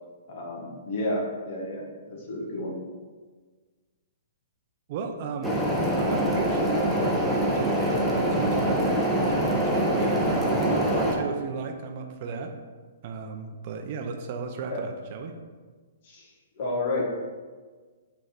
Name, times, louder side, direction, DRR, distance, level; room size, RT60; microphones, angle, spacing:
voice 1, 0.3-2.8 14.6-14.9 16.0-16.3 16.6-17.0, left 1 dB, 50° left, -2 dB, 1.7 m, -31 dB
voice 2, 4.9-12.5 13.0-15.3, right 5 dB, 45° right, 4 dB, 0.6 m, -34 dB
sound 1, 5.4-11.1, right 1 dB, ahead, 1.0 m, -24 dB
6.2 x 3.6 x 4.5 m, 1.4 s
figure-of-eight pair, 120°, 0 cm